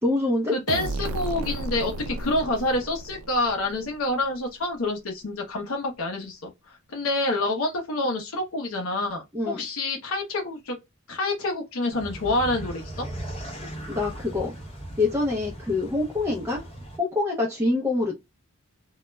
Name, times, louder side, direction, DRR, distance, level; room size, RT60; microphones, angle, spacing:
voice 1, 0.0-0.5 9.3-9.6 13.9-14.5 15.0-16.6 17.0-18.1, left 2 dB, 10° right, 0.5 m, -25 dB
voice 2, 0.5-6.5 6.9-10.8 11.1-13.1, left 2 dB, 75° left, 0.6 m, -27 dB
sound 1, 0.7-4.3, right 2 dB, 70° right, 0.3 m, -33 dB
sound 2, 11.9-17.0, right 1 dB, 25° left, 0.8 m, -38 dB
2.2 x 2.0 x 3.0 m
head